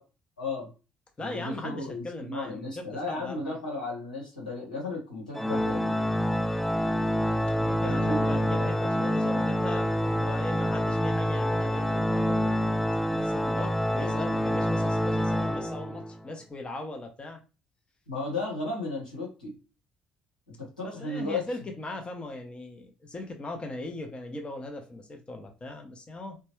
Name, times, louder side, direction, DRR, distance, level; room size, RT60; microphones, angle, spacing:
voice 1, 0.4-0.7 1.2-6.0 7.8-8.7 18.1-19.5 20.6-21.4, left 2 dB, 85° left, -4 dB, 1.1 m, -34 dB
voice 2, 1.2-3.6 7.5-12.5 13.1-17.4 20.8-26.4, left 2 dB, 25° left, 3 dB, 0.7 m, -39 dB
Organ, 5.3-16.2, equal, 5° left, 0.3 m, -27 dB
3.0 x 2.2 x 3.0 m, 0.31 s
figure-of-eight pair, 50°, 4 cm